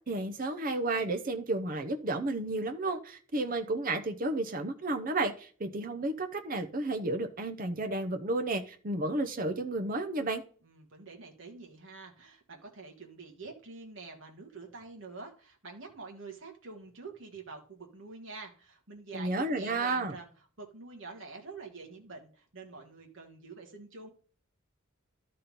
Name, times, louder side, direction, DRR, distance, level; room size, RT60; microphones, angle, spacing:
voice 1, 0.1-10.4 19.1-20.2, right 2 dB, 40° right, 0.8 m, -32 dB
voice 2, 10.6-20.3 20.6-24.1, right 4 dB, 60° right, 1.6 m, -47 dB
12.0 x 4.3 x 5.3 m
head